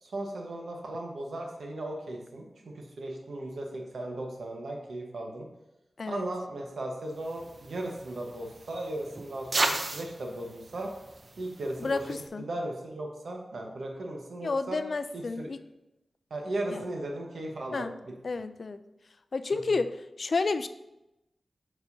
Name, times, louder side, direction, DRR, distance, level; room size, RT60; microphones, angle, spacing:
voice 1, 0.0-5.5 6.1-10.9 11.4-14.8 15.1-15.5 16.3-17.9, right 1 dB, 85° right, 1 dB, 1.1 m, -36 dB
sound 1, 7.2-12.3, right 2 dB, 45° right, 0.6 m, -36 dB
voice 2, 11.8-12.4 14.4-15.6 16.7-16.9 17.7-18.0 18.2-18.8 19.3-20.7, left 3 dB, 60° left, 11 dB, 0.3 m, -31 dB
7.1 x 6.5 x 2.7 m, 0.95 s
wide cardioid pair, 85°, 0 cm